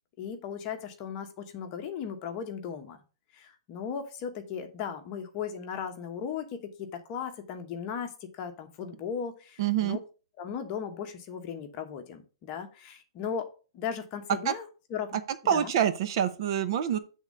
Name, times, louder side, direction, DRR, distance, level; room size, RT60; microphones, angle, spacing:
voice 1, 0.2-3.0 3.4-10.0 10.4-13.5 13.7-15.2 15.4-15.7, left 7 dB, 30° left, 6 dB, 1.1 m, -37 dB
voice 2, 9.6-10.0 14.5-14.6 15.5-17.0, right 9 dB, 45° right, 11 dB, 0.7 m, -26 dB
8.0 x 3.6 x 5.3 m, 0.35 s
hypercardioid pair, 165°, 3 cm